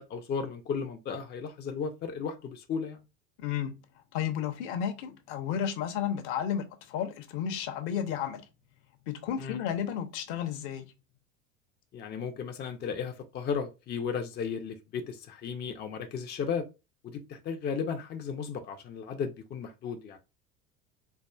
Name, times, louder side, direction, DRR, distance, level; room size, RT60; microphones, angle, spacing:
voice 1, 0.0-3.0 9.4-9.6 11.9-16.6 17.0-20.2, left 6 dB, 25° left, 0.5 m, -35 dB
voice 2, 3.4-3.7 4.1-8.4 9.1-10.8, left 9 dB, 55° left, 0.8 m, -32 dB
4.5 x 2.3 x 2.3 m
figure-of-eight pair, 70°, 40 cm